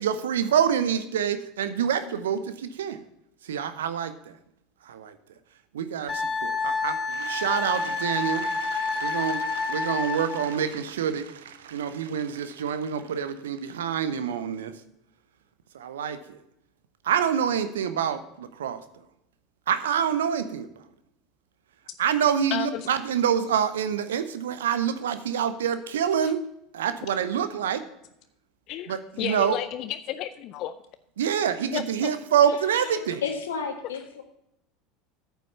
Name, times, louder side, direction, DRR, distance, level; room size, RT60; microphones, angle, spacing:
voice 1, 0.0-3.0 3.4-4.4 4.8-5.2 5.7-14.7 15.7-16.4 17.0-18.8 19.7-20.7 22.0-26.4 26.7-27.8 28.9-29.6 31.2-33.2, right 8 dB, 75° right, 12 dB, 0.7 m, -27 dB
Wind instrument woodwind instrument, 6.1-10.5, left 4 dB, 15° left, 3.1 m, -29 dB
voice 2, 22.5-22.9 26.2-26.3 28.7-30.7 31.7-32.1, left 11 dB, 50° left, 13 dB, 0.5 m, -32 dB
voice 3, 32.5-34.2, left 6 dB, 75° left, 5 dB, 1.7 m, -33 dB
9.3 x 8.1 x 5.4 m, 0.81 s
figure-of-eight pair, 75°, 0 cm